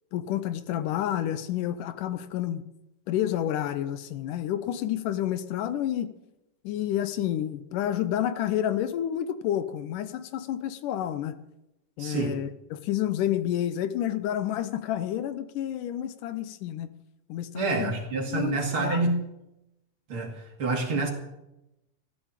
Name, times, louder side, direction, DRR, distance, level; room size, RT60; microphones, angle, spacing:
voice 1, 0.1-2.6 3.1-6.1 6.6-11.4 12.0-16.9 17.3-17.9 18.3-19.1, left 11 dB, 80° left, 12 dB, 2.3 m, -29 dB
voice 2, 12.0-12.4 17.5-19.2 20.1-21.1, right 3 dB, 45° right, 2 dB, 2.8 m, -27 dB
14.0 x 12.0 x 7.4 m, 0.90 s
omnidirectional pair, 3.8 m